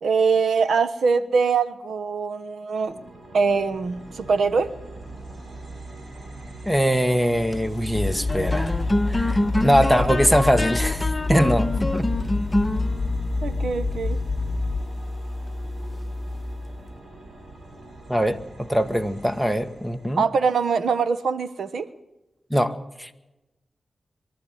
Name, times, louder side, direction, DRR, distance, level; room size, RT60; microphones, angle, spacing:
voice 1, 0.0-3.0 3.3-4.7 11.3-11.4 13.4-14.2 20.2-21.9, right 5 dB, 85° right, 13 dB, 1.2 m, -23 dB
sound 1, 2.8-20.2, right 2 dB, 40° right, 6.2 m, -43 dB
voice 2, 6.6-8.8 9.1-12.1 18.1-20.2 22.5-23.1, equal, 5° right, 11 dB, 1.6 m, -22 dB
sound 2, 7.3-16.9, left 1 dB, 25° left, 1.5 m, -28 dB
sound 3, 7.9-14.8, left 4 dB, 50° left, 1.1 m, -28 dB
23.5 x 13.0 x 9.2 m, 1.0 s
cardioid pair, 55°, 0 cm